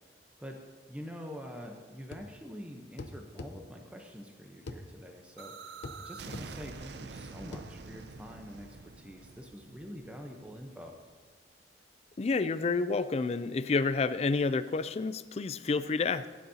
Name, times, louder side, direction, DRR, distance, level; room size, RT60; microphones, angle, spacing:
voice 1, 0.9-10.9, equal, 5° right, 2 dB, 0.8 m, -46 dB
sound 1, 2.1-2.3 3.0-3.5 4.7-4.8 5.8-6.0 6.3-6.5 7.5-7.7, left 2 dB, 80° left, 0.7 m, -42 dB
sound 2, 5.4-11.1, right 4 dB, 65° right, 0.5 m, -47 dB
voice 2, 12.2-16.3, left 4 dB, 35° left, 14 dB, 0.3 m, -29 dB
16.0 x 9.6 x 2.8 m, 1.5 s
head